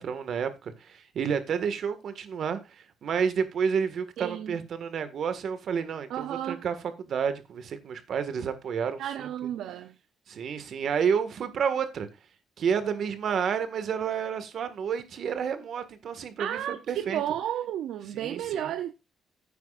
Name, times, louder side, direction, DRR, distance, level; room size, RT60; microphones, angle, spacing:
voice 1, 0.0-9.3 10.3-12.1 12.6-17.2 18.1-18.7, right 7 dB, 60° right, 1.8 m, -30 dB
voice 2, 4.2-4.6 6.1-6.6 9.0-9.9 16.4-18.9, right 11 dB, 80° right, 0.7 m, -32 dB
15.5 x 9.2 x 2.5 m
cardioid pair, 90°, 0 cm